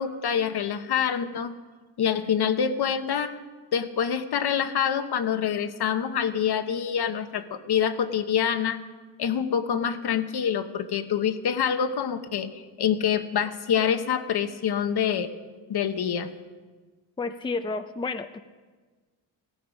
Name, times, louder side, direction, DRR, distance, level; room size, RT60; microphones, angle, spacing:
voice 1, 0.0-1.5 2.0-3.3 3.7-8.8 9.2-15.3 15.7-16.3, left 8 dB, 55° left, 9 dB, 1.1 m, -26 dB
voice 2, 17.2-18.4, left 3 dB, 10° left, 8 dB, 0.6 m, -31 dB
16.5 x 13.5 x 5.2 m, 1.4 s
cardioid pair, 85°, 46 cm